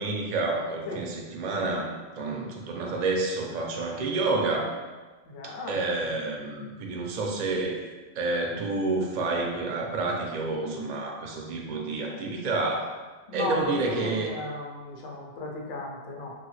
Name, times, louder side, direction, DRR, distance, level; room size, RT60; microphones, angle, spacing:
voice 1, 0.0-4.8 5.4-7.9 8.2-13.0 13.3-14.3, right 3 dB, 60° right, 0 dB, 0.4 m, -29 dB
voice 2, 5.3-6.1 13.3-16.3, left 2 dB, 50° left, -1 dB, 0.5 m, -35 dB
3.0 x 2.2 x 3.1 m, 1.3 s
omnidirectional pair, 1.2 m